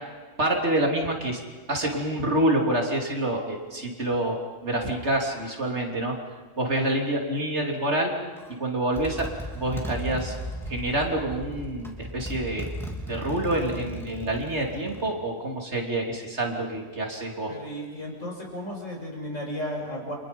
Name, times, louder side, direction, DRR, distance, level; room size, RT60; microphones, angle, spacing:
voice 1, 0.4-1.4 1.7-4.4 4.6-6.1 6.6-8.1 8.6-9.3 9.5-10.4 10.7-12.7 13.1-17.5, right 1 dB, 60° right, 1 dB, 3.5 m, -27 dB
Motorcycle, 8.4-8.5 8.9-15.1, equal, ahead, 3.1 m, -36 dB
voice 2, 17.5-20.1, equal, 75° left, -1 dB, 7.0 m, -34 dB
30.0 x 26.0 x 5.4 m, 1.4 s
omnidirectional pair, 1.3 m